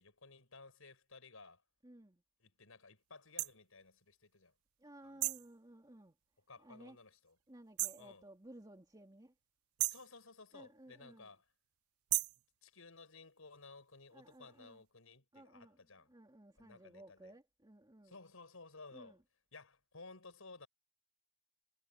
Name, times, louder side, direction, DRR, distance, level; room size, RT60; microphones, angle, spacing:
voice 1, 0.0-1.6 2.4-4.5 5.0-5.2 6.5-7.3 8.0-8.2 9.9-11.4 12.6-16.1 16.6-17.3 18.0-19.2 19.5-20.7, left 3 dB, 85° left, 4.9 m, -56 dB
voice 2, 1.8-2.2 4.8-6.2 6.6-7.0 7.5-9.3 10.5-11.3 14.1-14.8 15.3-18.2 18.9-19.2, right 1 dB, 20° right, 2.6 m, -57 dB
sound 1, 3.4-3.5 5.2-5.5 7.8-8.1 9.8-10.1 12.1-12.4, right 21 dB, 85° right, 0.3 m, -35 dB
head